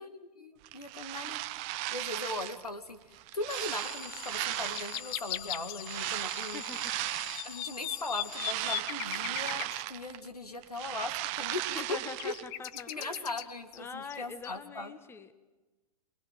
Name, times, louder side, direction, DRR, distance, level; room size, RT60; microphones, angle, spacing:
voice 1, 0.0-1.4 1.9-3.0 3.3-6.6 7.4-11.6 11.9-12.0 12.2-12.3 12.9-14.9, left 2 dB, 85° left, 8 dB, 2.6 m, -39 dB
sound 1, 0.6-2.7 3.1-5.2 5.8-7.6 8.0-10.3 10.5-12.5, right 17 dB, 35° right, 0.9 m, -36 dB
sound 2, 2.5-2.6 3.8-3.9 4.2-6.3 6.6-6.7 6.9-9.8 11.1-13.8 14.1-14.2 14.4-14.6, left 13 dB, 40° left, 1.1 m, -38 dB
Alarm, 3.5-9.1, left 8 dB, 60° left, 1.7 m, -46 dB
voice 2, 6.5-6.9 11.7-13.5 13.7-15.3, left 5 dB, 10° left, 11 dB, 1.5 m, -44 dB
25.0 x 21.0 x 7.7 m, 1.1 s
figure-of-eight pair, 110°, 19 cm